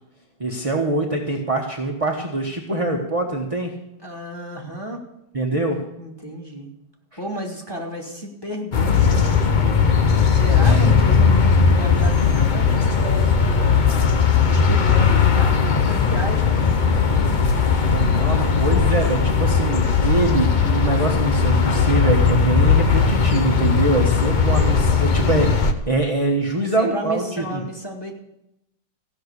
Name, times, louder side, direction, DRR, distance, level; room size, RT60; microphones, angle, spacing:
voice 1, 0.4-3.7 5.3-5.8 10.5-10.9 18.1-27.6, right 2 dB, 20° right, 0 dB, 1.1 m, -24 dB
voice 2, 4.0-5.1 5.5-5.6 6.0-6.7 7.2-9.8 10.3-14.0 14.5-17.4 26.6-28.1, equal, 15° left, 1 dB, 2.1 m, -33 dB
sound 1, 8.7-25.7, left 5 dB, 45° left, 0.6 m, -18 dB
15.5 x 6.1 x 8.2 m, 0.85 s
omnidirectional pair, 2.1 m